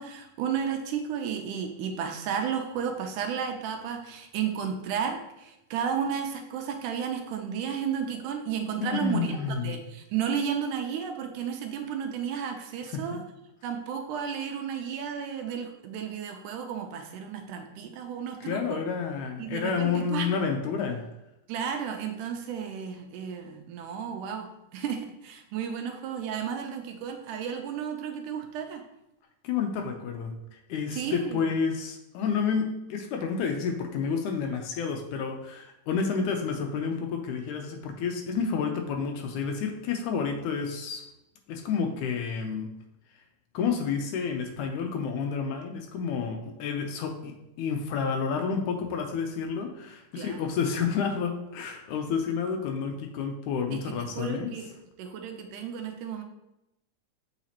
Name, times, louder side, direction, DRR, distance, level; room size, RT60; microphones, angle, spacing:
voice 1, 0.0-9.4 9.6-13.2 13.6-18.8 19.4-20.3 21.5-24.5 24.7-28.8 30.9-31.4 50.2-50.4 53.7-54.7 55.0-56.2, right 7 dB, 80° right, 4 dB, 2.1 m, -33 dB
voice 2, 8.8-9.8 12.9-13.2 18.4-21.1 29.4-41.0 41.5-42.7 43.5-47.3 47.6-54.6, left 6 dB, 80° left, 4 dB, 1.9 m, -30 dB
7.3 x 4.9 x 2.8 m, 0.89 s
omnidirectional pair, 3.8 m